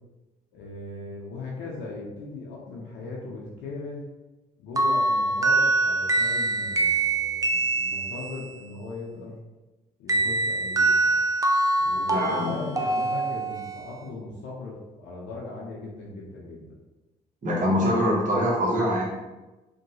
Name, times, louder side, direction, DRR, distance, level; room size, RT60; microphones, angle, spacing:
voice 1, 0.5-4.0 4.6-9.4 10.0-11.1 11.8-16.7, left 3 dB, 75° left, -4 dB, 0.6 m, -38 dB
sound 1, 4.8-8.5 10.1-13.9, right 2 dB, 20° right, 0.4 m, -24 dB
voice 2, 12.1-12.6 17.4-19.0, equal, 40° right, -4 dB, 1.0 m, -24 dB
2.7 x 2.2 x 2.8 m, 1.1 s
hypercardioid pair, 50°, 19 cm